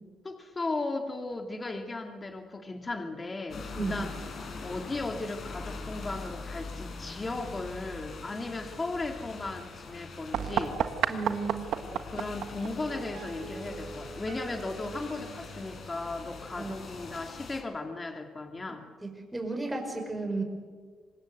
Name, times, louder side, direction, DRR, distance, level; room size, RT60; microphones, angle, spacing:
voice 1, 0.2-4.1 4.6-10.8 11.9-18.9, left 2 dB, 25° left, 5 dB, 2.5 m, -36 dB
sound 1, 3.5-17.6, left 4 dB, 55° left, 4.6 m, -43 dB
sound 2, 10.3-15.9, right 9 dB, 75° right, 1.4 m, -35 dB
voice 2, 11.1-11.6 16.6-16.7 19.0-20.4, right 3 dB, 10° right, 2 dB, 5.9 m, -33 dB
25.5 x 20.5 x 8.0 m, 1.5 s
cardioid pair, 90°, 0 cm